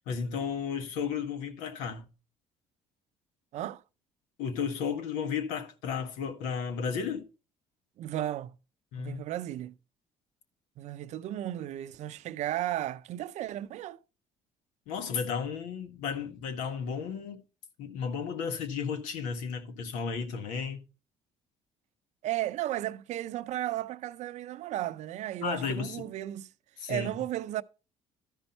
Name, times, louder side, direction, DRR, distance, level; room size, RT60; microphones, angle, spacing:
voice 1, 0.1-2.1 4.4-7.3 8.9-9.2 14.9-17.4 17.8-20.8 25.4-26.1 26.8-27.1, left 6 dB, 85° left, 1.4 m, -33 dB
voice 2, 8.0-8.5 9.0-9.8 10.8-14.0 22.2-26.5 26.9-27.6, right 13 dB, 65° right, 0.5 m, -34 dB
12.5 x 5.4 x 4.4 m
supercardioid pair, 85°, 13 cm